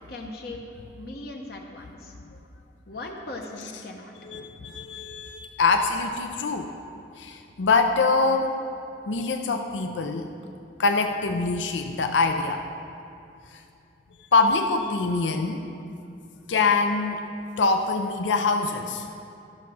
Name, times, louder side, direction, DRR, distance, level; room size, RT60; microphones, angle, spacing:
voice 1, 0.1-0.6 1.0-2.1 2.9-4.1, left 2 dB, 55° left, 1 dB, 0.8 m, -38 dB
voice 2, 4.2-6.7 7.2-8.6 9.1-10.3 10.8-12.6 13.5-13.6 14.3-15.7 16.5-17.2 17.6-19.1, left 3 dB, 90° left, 5 dB, 0.5 m, -24 dB
13.5 x 5.8 x 6.2 m, 2.6 s
head